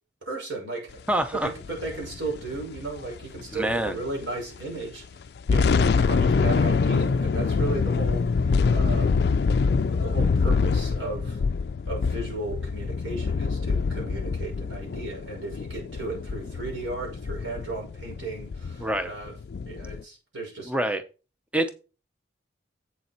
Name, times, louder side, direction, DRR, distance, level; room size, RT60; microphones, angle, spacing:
voice 1, 0.2-1.0 1.3-5.2 5.5-9.1 9.6-11.4 11.8-19.3 19.7-20.7, right 2 dB, 90° right, 6.0 m, -35 dB
voice 2, 1.1-1.5 3.5-3.9 18.8-19.1 20.7-21.0 21.5-21.7, right 1 dB, 5° right, 0.7 m, -25 dB
sound 1, 1.4-4.3 4.6-4.7 5.2-20.0, left 4 dB, 55° left, 0.3 m, -25 dB
8.0 x 6.9 x 4.4 m
head